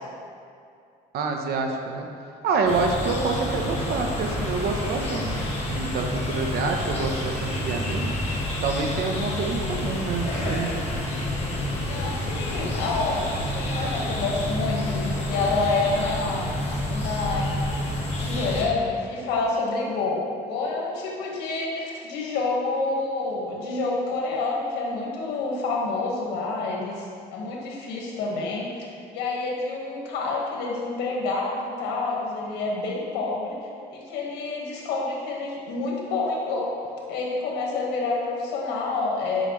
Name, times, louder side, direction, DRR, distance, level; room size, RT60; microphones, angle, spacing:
voice 1, 1.1-2.1 2.4-8.1 8.6-10.7, right 4 dB, 70° right, 2 dB, 1.0 m, -27 dB
sound 1, 2.7-18.6, left 1 dB, 40° left, 1.7 m, -29 dB
voice 2, 11.8-13.2 13.5-16.5 16.9-17.5 18.2-20.2 20.5-27.0 27.3-33.6 33.9-36.7 37.1-39.5, left 3 dB, 90° left, -2 dB, 1.6 m, -28 dB
9.0 x 5.6 x 3.2 m, 2.4 s
cardioid pair, 110°, 17 cm